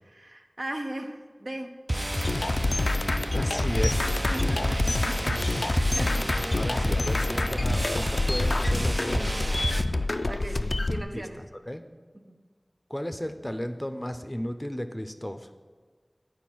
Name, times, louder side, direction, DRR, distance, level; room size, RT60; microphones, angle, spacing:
voice 1, 0.1-1.8 4.0-5.4 5.7-6.3 6.8-6.9 10.3-11.4 12.3-12.4, right 1 dB, 60° right, 4 dB, 0.7 m, -38 dB
sound 1, 1.9-9.8, right 1 dB, 35° right, 0.4 m, -31 dB
sound 2, 2.1-11.0, left 2 dB, 80° left, 0.3 m, -27 dB
voice 2, 3.3-4.1 6.5-9.5 10.6-11.9 12.9-15.5, equal, 20° left, 8 dB, 0.5 m, -35 dB
8.9 x 4.5 x 6.1 m, 1.5 s
wide cardioid pair, 45°, 0 cm